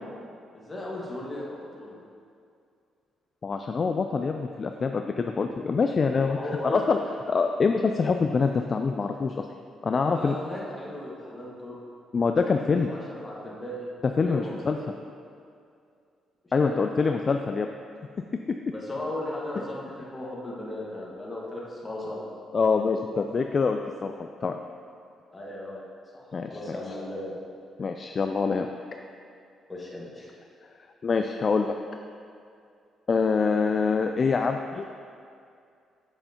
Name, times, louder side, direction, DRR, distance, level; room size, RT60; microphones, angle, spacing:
voice 1, 0.5-2.0 6.2-6.8 9.8-11.8 12.9-13.9 14.3-14.8 16.6-17.1 18.7-22.2 25.3-25.8 26.1-27.3 29.7-30.3, left 1 dB, 20° left, -5 dB, 1.6 m, -36 dB
voice 2, 3.4-6.4 6.6-7.0 7.3-9.5 9.8-10.4 12.1-12.9 14.2-14.8 16.5-17.7 22.5-24.6 26.3-26.5 27.8-28.7 31.0-31.7 33.1-34.9, left 4 dB, 40° left, 5 dB, 0.3 m, -25 dB
7.7 x 6.8 x 2.9 m, 2.4 s
cardioid pair, 90°, 0 cm